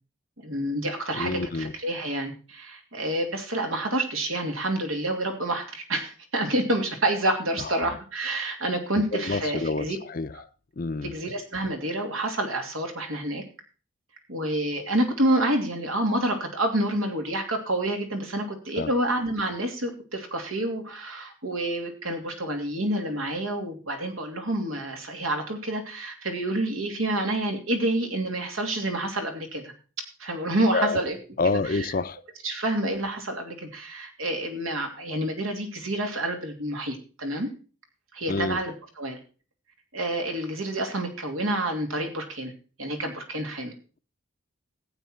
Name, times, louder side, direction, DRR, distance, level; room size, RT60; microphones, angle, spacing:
voice 1, 0.4-10.0 11.0-13.4 14.3-29.7 30.2-31.2 31.4-31.9 32.4-37.5 38.1-39.2 39.9-42.5 42.8-43.7, right 1 dB, 90° right, 2.9 m, -28 dB
voice 2, 1.1-1.7 7.6-7.9 9.1-10.3 10.8-11.1 18.8-18.9 30.7-31.0 31.4-32.2 38.3-38.6, left 3 dB, 45° left, 0.5 m, -28 dB
15.0 x 8.5 x 4.4 m
head